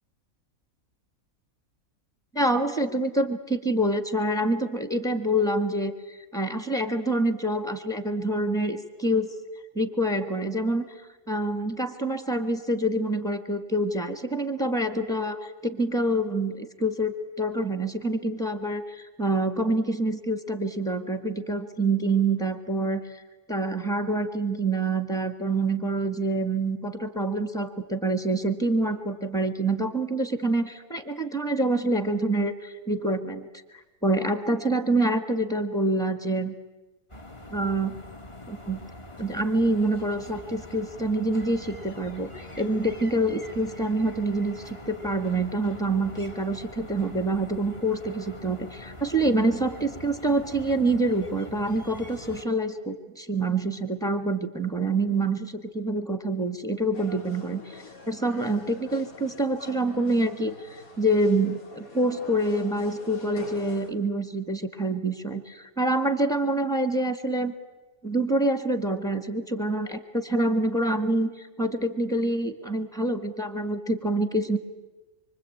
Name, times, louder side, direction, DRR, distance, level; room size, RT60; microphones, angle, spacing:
voice 1, 2.3-9.3 9.7-10.8 11.3-23.2 23.5-33.5 33.7-36.5 37.5-37.9 38.5-38.8 39.2-67.5 68.0-74.6, right 2 dB, ahead, 8 dB, 1.6 m, -26 dB
sound 1, 37.1-52.4, left 1 dB, 20° left, 1.6 m, -44 dB
sound 2, 56.9-63.9, left 3 dB, 75° left, 2.8 m, -45 dB
25.0 x 24.5 x 8.7 m, 1.1 s
omnidirectional pair, 1.5 m